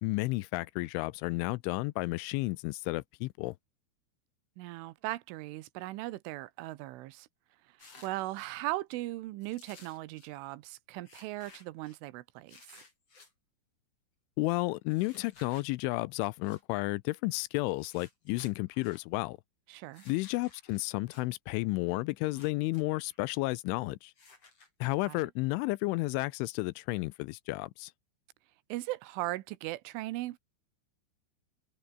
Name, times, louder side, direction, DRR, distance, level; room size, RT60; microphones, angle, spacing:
voice 1, 0.0-3.5 14.4-19.4 20.1-24.1 24.8-27.9, left 22 dB, 85° left, 3.0 m, -32 dB
voice 2, 4.6-7.3 7.8-12.6 19.7-20.1 25.0-25.3 28.7-30.4, right 17 dB, 85° right, 3.4 m, -38 dB
sound 1, 7.8-8.5 9.4-10.3 11.0-12.0 12.5-13.3 14.9-15.7 16.4-16.6 17.7-19.0 19.9-21.3 22.2-22.8 23.1-23.2 24.2-25.2, left 4 dB, 30° left, 6.2 m, -57 dB
omnidirectional pair, 5.7 m